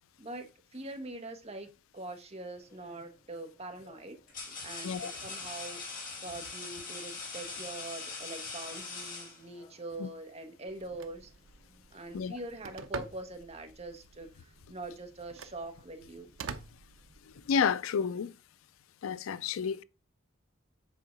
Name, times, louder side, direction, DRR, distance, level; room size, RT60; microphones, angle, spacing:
voice 1, 0.2-4.2 4.5-11.3 11.9-16.3, right 2 dB, 30° right, 1.2 m, -43 dB
sound 1, 2.7-3.0 3.8-9.8, left 4 dB, 45° left, 2.5 m, -42 dB
Telephone, 10.7-17.7, right 5 dB, 80° right, 0.7 m, -47 dB
voice 2, 17.5-18.3 19.0-19.8, left 6 dB, 90° left, 0.4 m, -30 dB
7.4 x 3.7 x 5.1 m
head